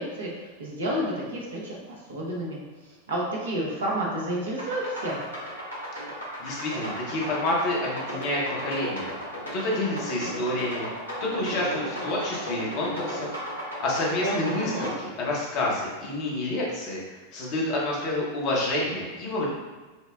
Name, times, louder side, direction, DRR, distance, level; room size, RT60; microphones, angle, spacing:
voice 1, 0.0-2.6 3.1-5.2 14.2-14.9, right 1 dB, 65° right, -3 dB, 0.9 m, -30 dB
sound 1, 4.6-14.9, equal, 80° left, 1.1 m, -35 dB
voice 2, 6.4-9.1 9.5-10.9 11.2-19.5, left 1 dB, 45° left, -4 dB, 0.9 m, -29 dB
5.3 x 2.1 x 2.4 m, 1.3 s
figure-of-eight pair, 90°, 0 cm